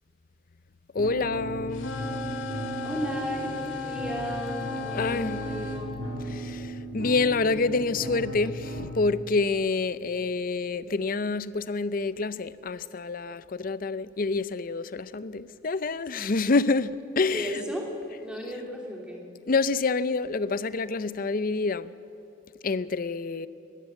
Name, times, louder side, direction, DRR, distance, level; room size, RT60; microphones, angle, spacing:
voice 1, 0.9-1.9 4.9-5.4 6.3-17.6 19.5-21.9 22.6-23.5, left 3 dB, 45° left, 0.5 m, -27 dB
sound 1, 1.0-9.0, right 1 dB, 60° right, 2.6 m, -36 dB
sound 2, 1.7-5.9, left 4 dB, 80° left, 2.1 m, -36 dB
voice 2, 2.8-6.0 17.3-17.9 18.2-19.2, right 1 dB, 5° right, 3.1 m, -35 dB
20.5 x 14.0 x 9.0 m
head